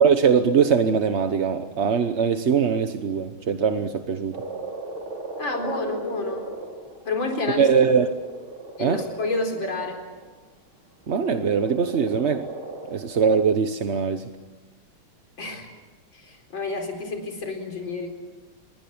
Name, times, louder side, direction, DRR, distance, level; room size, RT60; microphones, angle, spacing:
voice 1, 0.0-4.4 7.6-8.1 8.8-9.0 11.1-12.5 12.9-14.3, right 6 dB, 45° right, 8 dB, 0.9 m, -21 dB
Frog, 4.3-10.2 11.1-13.6, right 2 dB, 70° right, 5.4 m, -37 dB
voice 2, 5.4-6.4 7.1-7.7 8.8-10.0 15.4-15.7 16.1-18.1, left 2 dB, 60° left, 3 dB, 4.9 m, -29 dB
26.5 x 21.5 x 8.7 m, 1.3 s
omnidirectional pair, 2.3 m